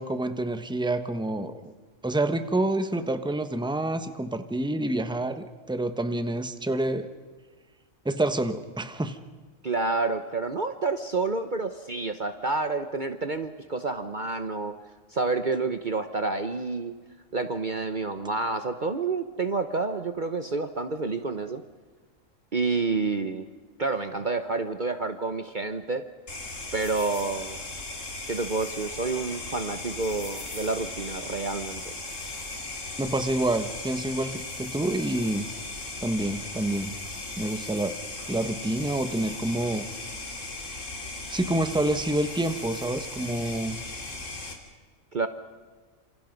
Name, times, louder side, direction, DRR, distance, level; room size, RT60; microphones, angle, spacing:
voice 1, 0.0-1.7 2.0-7.1 8.0-9.2 33.0-35.5 36.0-36.9 37.4-38.0 38.3-39.9 41.3-43.8, right 1 dB, 5° right, 9 dB, 1.3 m, -28 dB
voice 2, 9.6-14.8 15.1-16.9 17.3-21.6 22.5-23.5 23.8-26.0 26.7-27.6 28.3-31.9 45.1-45.3, right 3 dB, 40° right, 8 dB, 1.1 m, -29 dB
sound 1, 26.3-44.5, left 2 dB, 65° left, 3.6 m, -37 dB
28.0 x 27.5 x 5.3 m, 1.4 s
omnidirectional pair, 1.4 m